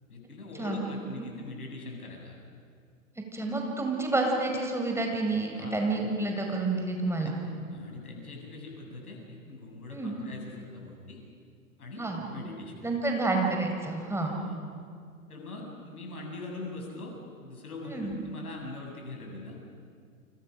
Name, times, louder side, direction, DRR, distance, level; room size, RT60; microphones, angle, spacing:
voice 1, 0.1-2.3 5.5-5.8 7.2-7.3 7.7-11.2 11.8-12.1 12.3-12.9 14.2-14.5 15.3-17.1 17.4-19.6, left 2 dB, 75° left, 0 dB, 7.8 m, -42 dB
voice 2, 3.2-7.3 9.9-10.2 12.0-12.2 12.8-14.4 17.9-18.2, right 2 dB, 5° right, 1 dB, 5.1 m, -29 dB
29.5 x 26.0 x 6.5 m, 2.2 s
figure-of-eight pair, 100°, 44 cm